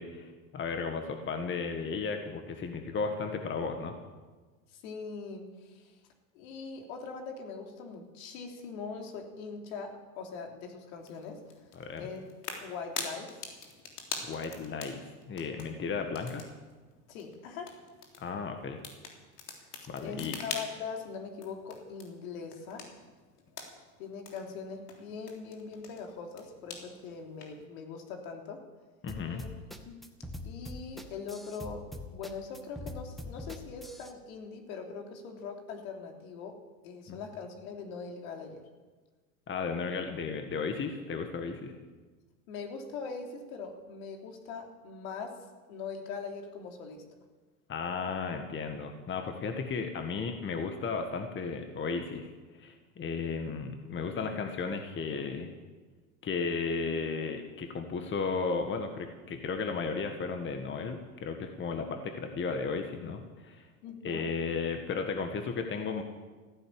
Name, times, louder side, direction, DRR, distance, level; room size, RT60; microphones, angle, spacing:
voice 1, 0.0-3.9 11.7-12.1 14.2-15.0 15.3-16.5 18.2-18.8 19.9-20.4 29.0-29.4 37.1-37.2 39.5-41.7 47.7-55.5 56.2-63.7 64.0-66.0, left 5 dB, 25° left, 6 dB, 1.6 m, -34 dB
voice 2, 4.7-6.0 6.3-11.4 12.0-12.2 12.6-13.4 17.1-17.8 19.8-22.9 24.0-28.6 29.2-29.5 29.8-30.0 30.4-36.6 36.8-38.6 42.5-45.4 45.7-47.0 63.8-64.3, left 5 dB, 60° left, 3 dB, 3.5 m, -42 dB
sound 1, 11.0-27.6, left 5 dB, 80° left, 3.5 m, -46 dB
sound 2, 29.1-34.1, left 1 dB, ahead, 1.6 m, -42 dB
15.0 x 10.5 x 8.7 m, 1.3 s
hypercardioid pair, 100°, 46 cm